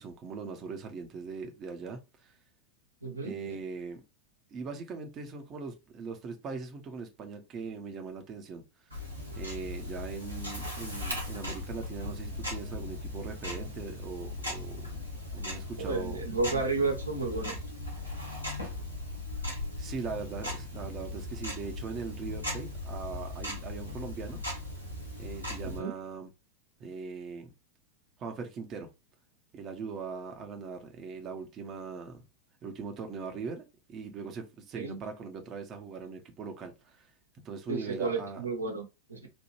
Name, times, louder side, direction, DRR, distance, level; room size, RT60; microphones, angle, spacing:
voice 1, 0.0-2.3 3.2-4.0 4.5-9.0 9.3-14.9 15.3-16.2 16.5-16.6 19.8-24.4 25.2-26.3 26.8-27.5 28.2-28.9 29.5-32.2 32.6-37.1 37.4-38.4, right 5 dB, 30° right, 0.9 m, -40 dB
voice 2, 3.0-3.4 15.8-17.6 25.6-25.9 34.8-35.0 37.7-39.3, right 3 dB, 80° right, 1.1 m, -32 dB
Tick-tock, 8.9-25.8, left 1 dB, 85° left, 1.9 m, -38 dB
4.2 x 2.7 x 3.1 m
figure-of-eight pair, 90°, 0 cm